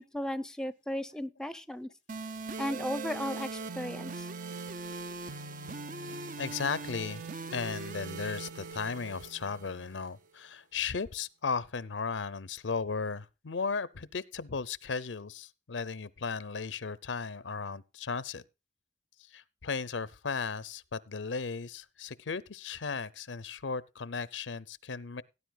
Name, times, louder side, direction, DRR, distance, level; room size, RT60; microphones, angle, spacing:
voice 1, 0.0-1.9 2.6-4.3, left 1 dB, 5° left, 0.7 m, -35 dB
sound 1, 2.1-10.1, right 4 dB, 45° right, 0.7 m, -40 dB
voice 2, 6.4-7.2 7.5-18.4 19.3-25.2, left 5 dB, 85° left, 0.7 m, -36 dB
17.5 x 9.9 x 2.3 m
head